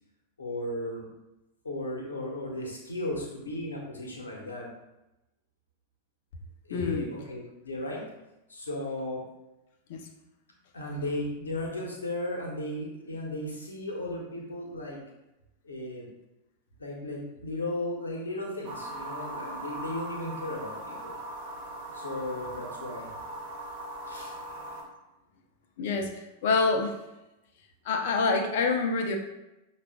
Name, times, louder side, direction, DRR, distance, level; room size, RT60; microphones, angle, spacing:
voice 1, 0.4-1.1 1.6-4.7 6.6-8.0 8.5-9.2 10.7-15.0 15.6-16.1 16.8-21.2 21.9-23.1 24.1-24.4, left 1 dB, 75° left, 0 dB, 1.0 m, -35 dB
voice 2, 6.7-7.1 9.9-10.0 25.8-26.9 27.9-29.2, left 4 dB, 55° left, 5 dB, 0.6 m, -26 dB
sound 1, 18.6-24.8, right 1 dB, 50° right, 0.9 m, -39 dB
5.6 x 2.4 x 3.5 m, 0.95 s
figure-of-eight pair, 90°, 0 cm